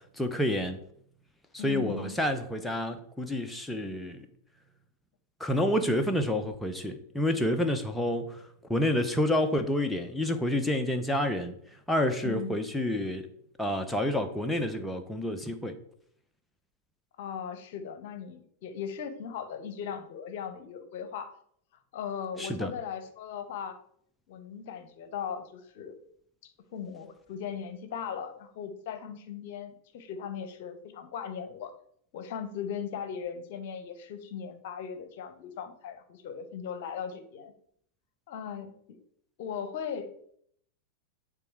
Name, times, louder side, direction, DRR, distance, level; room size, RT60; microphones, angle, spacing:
voice 1, 0.2-0.8 1.5-4.3 5.4-8.4 8.7-11.5 11.9-13.3 13.6-15.8 22.4-22.7, left 1 dB, 5° left, 0.7 m, -29 dB
voice 2, 1.6-2.2 12.2-12.6 17.2-21.3 21.9-23.8 24.3-25.9 26.4-31.7 32.1-37.5 38.3-39.0 39.4-40.1, left 7 dB, 50° left, 0.9 m, -38 dB
10.0 x 3.7 x 4.6 m
figure-of-eight pair, 90°, 0 cm